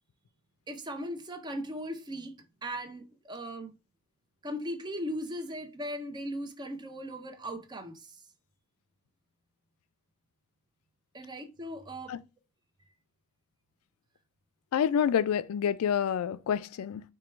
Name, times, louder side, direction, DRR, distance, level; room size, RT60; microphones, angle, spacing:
voice 1, 0.7-3.7 4.4-8.2 11.1-12.2, equal, 20° right, 0.5 m, -38 dB
voice 2, 14.7-17.0, left 8 dB, 80° left, 0.3 m, -28 dB
4.4 x 2.3 x 3.1 m
head